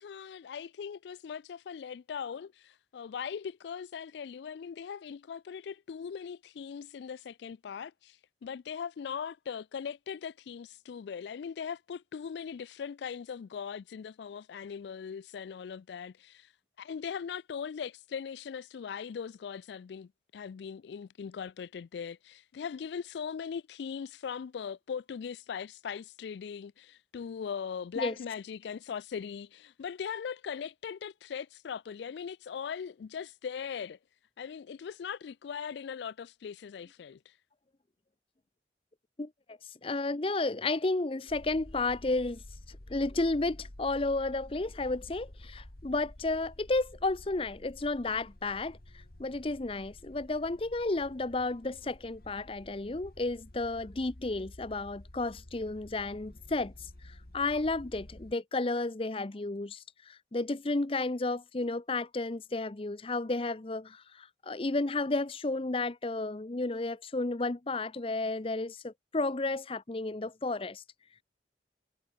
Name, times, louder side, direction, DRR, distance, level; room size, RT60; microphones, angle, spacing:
voice 1, 0.0-16.5 16.8-34.0 34.4-37.4, left 7 dB, 70° left, 0.3 m, -40 dB
voice 2, 39.2-70.8, left 2 dB, 30° left, 0.6 m, -32 dB
sound 1, 41.3-58.3, left 1 dB, 55° left, 1.9 m, -51 dB
head